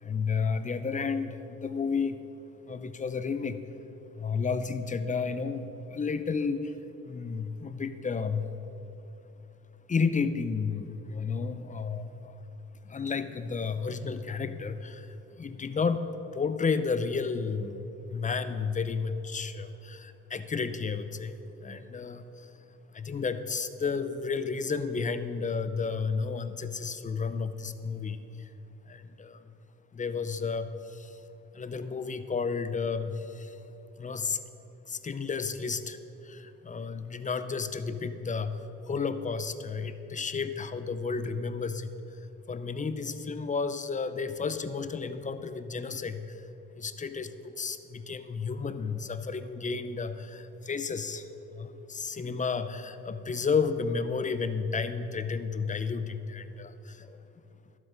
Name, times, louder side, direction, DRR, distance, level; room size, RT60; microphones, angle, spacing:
voice 1, 0.0-2.2 2.7-3.6 4.1-6.7 7.0-8.5 9.9-12.4 12.8-16.1 16.3-17.8 18.1-22.5 22.9-28.2 28.9-29.4 29.9-31.2 31.5-33.6 34.0-34.4 34.9-36.0 36.2-41.9 42.5-46.4 46.8-57.2, left 5 dB, 25° left, 11 dB, 0.6 m, -32 dB
12.0 x 7.9 x 5.3 m, 2.9 s
cardioid pair, 90°, 30 cm